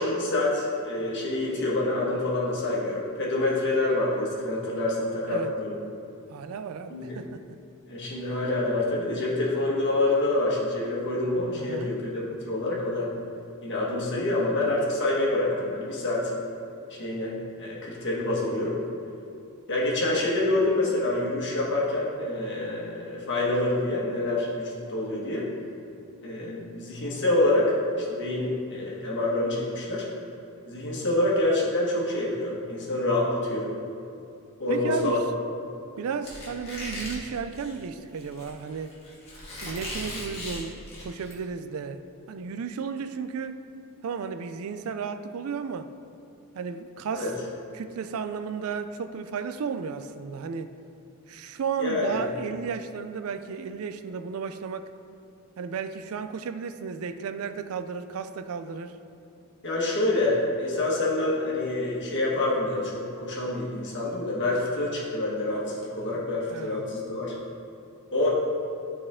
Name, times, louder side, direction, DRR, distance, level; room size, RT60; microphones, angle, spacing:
voice 1, 0.0-5.8 6.9-7.2 7.9-12.1 12.4-13.1 13.6-16.3 16.9-18.8 19.7-25.5 26.2-30.0 30.6-33.7 34.6-35.2 47.1-47.3 51.8-52.2 59.6-67.3 68.1-68.3, left 2 dB, 55° left, -4 dB, 1.6 m, -27 dB
voice 2, 6.3-7.5 11.6-12.0 34.7-35.2 36.0-39.0 39.6-43.6 44.0-45.9 46.5-47.3 47.7-50.8 51.3-54.9 55.6-59.0 66.5-66.9, right 6 dB, 70° right, 10 dB, 0.4 m, -34 dB
Squeak, 36.2-41.3, left 1 dB, 30° left, 1.8 m, -38 dB
12.0 x 4.3 x 3.7 m, 2.6 s
head